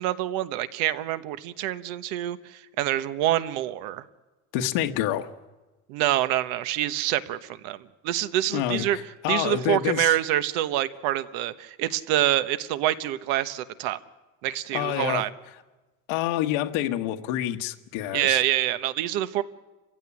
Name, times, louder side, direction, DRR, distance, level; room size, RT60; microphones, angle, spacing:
voice 1, 0.0-4.0 5.9-9.0 9.3-14.0 14.4-15.3 18.1-19.4, right 13 dB, 65° right, 12 dB, 1.2 m, -26 dB
voice 2, 4.5-5.3 8.5-10.1 14.7-15.2 16.1-18.4, left 12 dB, 70° left, 5 dB, 1.4 m, -27 dB
29.0 x 16.0 x 9.9 m, 1.2 s
cardioid pair, 155°, 40 cm